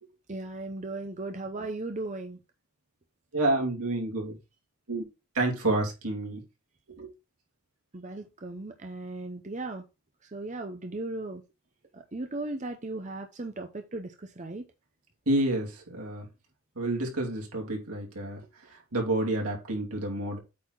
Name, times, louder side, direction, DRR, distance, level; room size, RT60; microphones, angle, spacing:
voice 1, 0.3-2.4 7.9-9.8 10.3-11.4 11.9-14.6, right 2 dB, 35° right, 0.7 m, -37 dB
voice 2, 3.3-4.4 4.9-5.0 5.3-6.4 6.9-7.1 15.3-16.3 16.7-18.4 18.7-20.4, right 2 dB, 85° right, 3.2 m, -29 dB
8.5 x 4.2 x 4.6 m
head